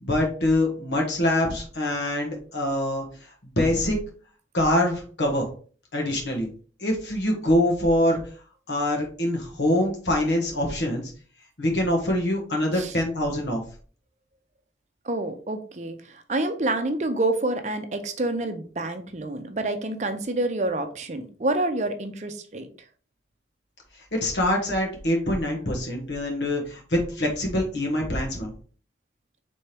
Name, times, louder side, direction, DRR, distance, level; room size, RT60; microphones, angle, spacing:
voice 1, 0.0-3.0 3.6-4.0 4.5-5.5 5.9-6.5 6.8-8.2 8.7-11.1 11.6-13.6 24.1-28.5, left 1 dB, 80° left, 0 dB, 1.3 m, -24 dB
voice 2, 15.0-22.7, right 2 dB, 40° right, 7 dB, 0.6 m, -28 dB
4.3 x 3.4 x 3.4 m, 0.42 s
head